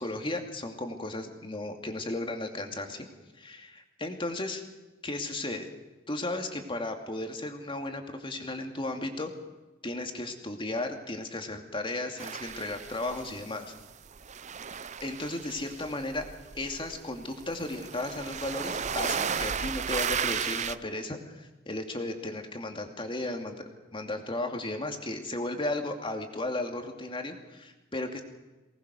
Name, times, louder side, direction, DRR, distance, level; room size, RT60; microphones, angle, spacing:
voice 1, 0.0-3.1 3.3-4.6 5.0-5.7 6.1-9.3 9.8-13.7 15.0-16.3 16.5-23.6 23.9-28.2, left 2 dB, 25° left, 4 dB, 2.6 m, -35 dB
sound 1, 12.2-13.8 14.1-20.7, right 7 dB, 35° right, 0.7 m, -34 dB
24.0 x 19.5 x 6.5 m, 1.2 s
head